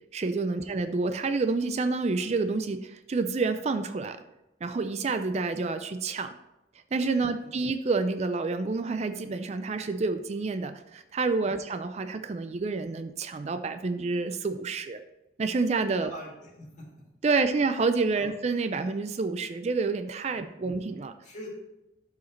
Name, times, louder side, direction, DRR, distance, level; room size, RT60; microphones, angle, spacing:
voice 1, 0.1-4.2 4.6-6.3 6.9-15.0 15.4-16.1 17.2-21.1, right 3 dB, 40° right, 9 dB, 0.4 m, -28 dB
voice 2, 7.2-7.5 11.4-11.6 16.0-16.9 18.1-18.3 20.3-20.5 21.2-21.5, left 1 dB, 45° left, -2 dB, 2.1 m, -45 dB
12.0 x 4.8 x 3.1 m, 0.93 s
head